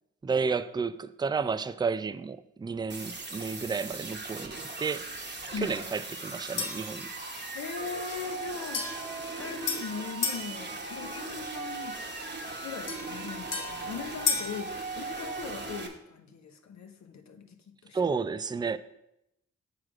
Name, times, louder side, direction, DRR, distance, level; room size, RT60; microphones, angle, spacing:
voice 1, 0.2-4.5 4.8-5.1 5.6-7.1 17.9-18.8, right 5 dB, 15° right, 0.3 m, -31 dB
sound 1, 2.9-15.9, right 3 dB, 35° right, 1.1 m, -39 dB
sound 2, 6.6-6.9 8.7-10.5 12.9-14.6, left 6 dB, 80° left, 1.3 m, -33 dB
voice 2, 7.5-8.9 9.4-12.0 12.6-18.0, left 5 dB, 60° left, 0.8 m, -40 dB
6.2 x 4.8 x 4.8 m
cardioid pair, 55°, 31 cm